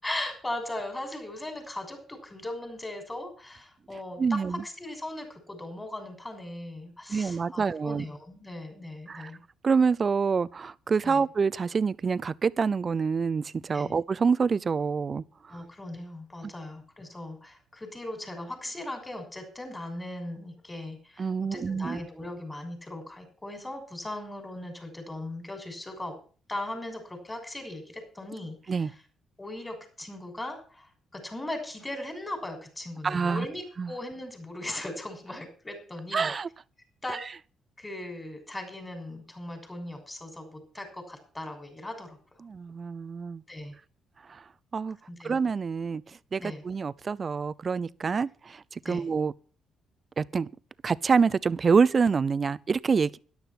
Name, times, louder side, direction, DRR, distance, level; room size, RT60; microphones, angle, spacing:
voice 1, 0.0-9.4 11.0-11.2 13.7-13.9 15.5-26.1 26.5-28.9 29.4-36.3 37.0-37.2 37.8-42.2 43.5-43.7 45.1-45.4 46.4-46.6 48.8-49.1, left 1 dB, 15° left, 6.1 m, -38 dB
voice 2, 4.2-4.6 7.1-8.0 9.1-9.3 9.6-15.2 21.2-22.0 28.7-28.9 33.0-33.5 33.8-33.9 36.1-36.5 42.4-43.4 44.7-45.0 45.2-46.0 46.3-49.3 50.2-50.5 50.8-53.2, right 5 dB, 40° right, 0.6 m, -26 dB
13.0 x 11.5 x 5.9 m
cardioid pair, 90°, 0 cm